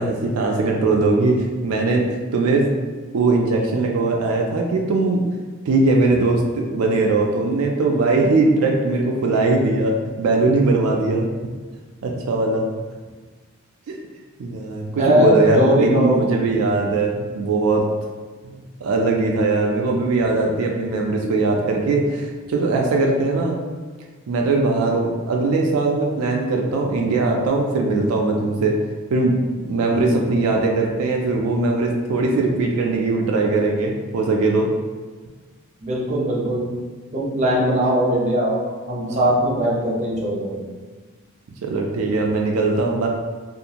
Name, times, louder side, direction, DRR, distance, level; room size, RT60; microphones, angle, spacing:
voice 1, 0.0-2.1 2.3-2.7 3.1-5.2 5.7-11.3 12.0-12.7 13.9-14.0 14.4-17.9 18.8-23.6 24.3-28.8 29.1-34.7 39.1-39.2 41.6-43.1, right 3 dB, 80° right, 0 dB, 0.3 m, -20 dB
voice 2, 15.0-16.2 35.8-36.7 37.1-38.6 38.9-40.6, equal, 35° right, -4 dB, 0.6 m, -20 dB
2.6 x 2.4 x 2.8 m, 1.4 s
head